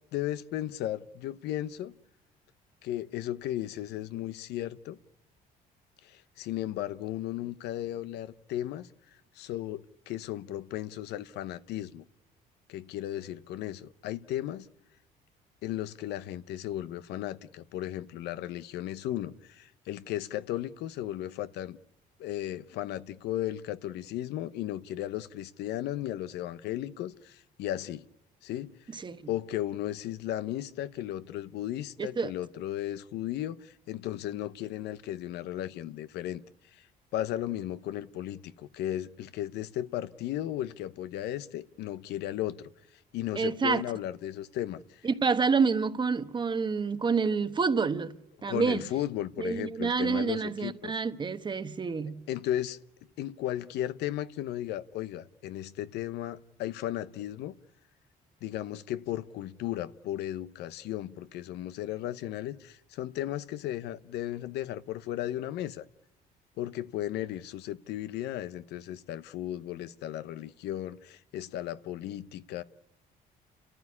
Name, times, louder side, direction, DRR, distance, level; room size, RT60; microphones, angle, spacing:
voice 1, 0.1-1.9 2.8-5.0 6.0-8.9 9.3-12.0 12.7-14.7 15.6-21.8 22.2-28.0 28.4-28.7 29.3-36.4 36.7-36.9 37.1-42.6 43.1-45.0 48.5-51.0 52.3-52.8 53.2-57.6 58.4-65.8 66.6-72.6, left 13 dB, 80° left, 0.9 m, -35 dB
voice 2, 28.9-29.3 32.0-32.3 43.3-43.8 45.0-48.2 48.4-48.8 49.4-52.2, right 5 dB, 25° right, 1.2 m, -28 dB
30.0 x 14.5 x 9.7 m
cardioid pair, 110°, 17 cm